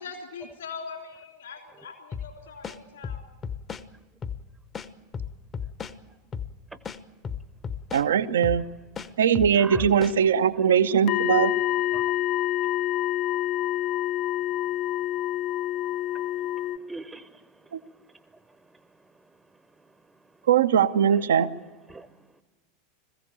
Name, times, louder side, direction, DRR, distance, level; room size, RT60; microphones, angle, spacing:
voice 1, 0.0-3.2, left 5 dB, 65° left, 3.4 m, -41 dB
sound 1, 2.1-2.3 2.6-3.8 4.2-4.4 4.7-6.0 6.3-6.5 6.8-8.1 8.4-8.6 9.0-10.2, left 7 dB, 25° left, 0.9 m, -34 dB
voice 2, 7.9-8.6 9.2-11.5 17.7-17.8 20.5-21.5, right 8 dB, 65° right, 0.7 m, -21 dB
voice 3, 9.6-9.9 11.9-12.1 16.1-17.7 18.3-18.8 21.1-21.5 21.9-22.1, right 3 dB, 10° right, 0.9 m, -43 dB
sound 2, 11.1-16.8, left 13 dB, 45° left, 0.6 m, -27 dB
21.0 x 15.5 x 8.6 m
figure-of-eight pair, 85°, 0 cm